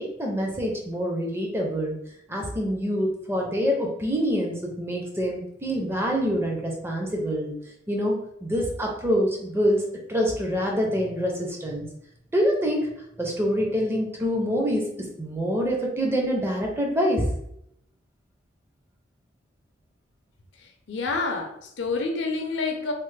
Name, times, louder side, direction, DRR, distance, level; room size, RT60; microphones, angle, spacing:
voice 1, 0.0-2.0 2.3-7.5 7.9-9.8 10.1-11.9 12.3-12.9 13.2-17.3, equal, 10° right, -1 dB, 0.5 m, -26 dB
voice 2, 20.9-22.9, left 3 dB, 65° left, 4 dB, 0.5 m, -28 dB
3.1 x 2.0 x 3.2 m, 0.75 s
head